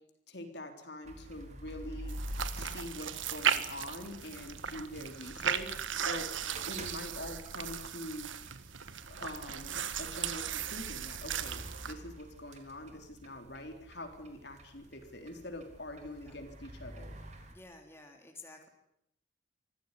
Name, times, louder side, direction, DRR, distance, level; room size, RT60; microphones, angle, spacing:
voice 1, 0.3-2.2 2.5-5.8 6.0-8.3 9.1-17.1, left 1 dB, 60° left, 5 dB, 3.7 m, -44 dB
sound 1, 1.0-17.5, equal, 35° right, 3.7 m, -49 dB
sound 2, 2.1-11.9, right 8 dB, 80° right, 1.6 m, -36 dB
voice 2, 17.5-18.7, left 2 dB, 15° left, 3 dB, 3.2 m, -52 dB
24.5 x 15.5 x 9.9 m, 0.80 s
head